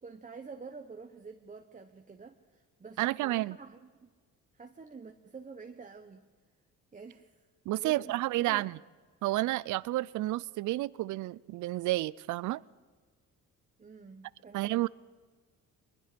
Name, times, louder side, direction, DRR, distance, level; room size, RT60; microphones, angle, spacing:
voice 1, 0.0-4.1 4.5-6.2 6.9-7.5 7.8-8.1 8.4-8.7 13.8-14.9, right 4 dB, 25° right, 5 dB, 1.2 m, -48 dB
voice 2, 3.0-3.6 7.7-8.8 9.2-12.6 14.5-14.9, right 17 dB, 70° right, 22 dB, 0.5 m, -30 dB
23.0 x 21.5 x 5.1 m, 1.5 s
cardioid pair, 95°, 31 cm